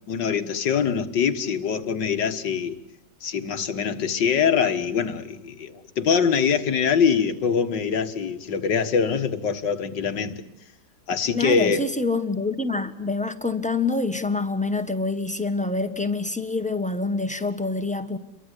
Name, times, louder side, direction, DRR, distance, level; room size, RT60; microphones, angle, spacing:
voice 1, 0.1-2.8 3.2-10.4 11.1-11.8, left 6 dB, 85° left, 2.3 m, -23 dB
voice 2, 11.3-18.2, left 3 dB, 5° left, 1.4 m, -26 dB
29.0 x 23.0 x 8.3 m
omnidirectional pair, 1.9 m